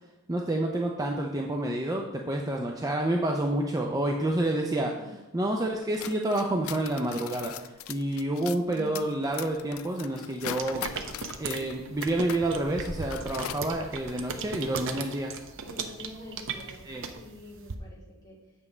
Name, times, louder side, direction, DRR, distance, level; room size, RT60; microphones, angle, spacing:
voice 1, 0.3-4.9 5.3-10.8 11.4-15.3 16.9-17.0, right 1 dB, 15° right, 1 dB, 0.5 m, -29 dB
sound 1, 5.8-12.5 12.7-13.7, left 10 dB, 65° left, 0.3 m, -40 dB
voice 2, 8.7-9.1 15.6-18.5, left 2 dB, 20° left, -6 dB, 2.7 m, -46 dB
sound 2, 10.5-17.7, right 5 dB, 60° right, 0.7 m, -38 dB
8.3 x 7.1 x 3.3 m, 0.99 s
head